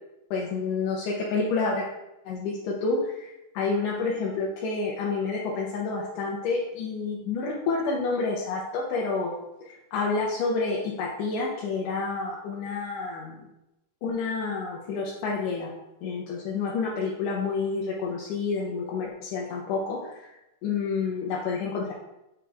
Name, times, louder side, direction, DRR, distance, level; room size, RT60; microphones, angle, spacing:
voice 1, 0.3-1.9 2.3-9.3 9.6-13.5 14.0-15.7 16.0-20.3 20.6-21.9, left 4 dB, 90° left, -4 dB, 2.4 m, -29 dB
7.5 x 4.8 x 3.5 m, 0.91 s
omnidirectional pair, 3.6 m